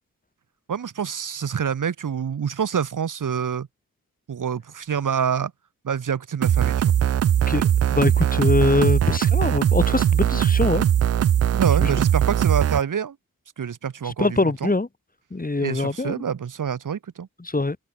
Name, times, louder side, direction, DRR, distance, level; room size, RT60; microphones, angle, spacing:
voice 1, 0.7-3.7 4.3-5.5 5.9-6.9 11.5-13.1 13.6-14.7 15.6-17.3, right 7 dB, 70° right, 3.5 m, -26 dB
sound 1, 6.4-12.8, right 10 dB, 50° right, 0.5 m, -20 dB
voice 2, 7.5-10.9 11.8-11.9 14.0-14.9 15.3-16.2 17.4-17.8, left 2 dB, 25° left, 4.0 m, -23 dB
cardioid pair, 55°, 33 cm